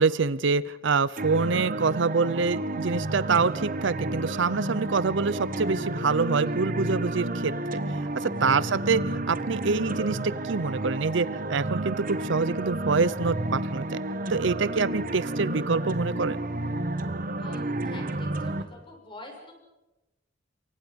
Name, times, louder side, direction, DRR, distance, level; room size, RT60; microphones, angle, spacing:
voice 1, 0.0-7.8 8.1-14.0 14.3-16.4, right 4 dB, 65° right, 18 dB, 0.7 m, -26 dB
sound 1, 1.2-18.6, right 1 dB, 45° right, 1.6 m, -31 dB
voice 2, 8.4-8.9 17.4-19.5, left 2 dB, 25° left, 2 dB, 6.8 m, -46 dB
28.5 x 24.0 x 5.3 m, 1.0 s
head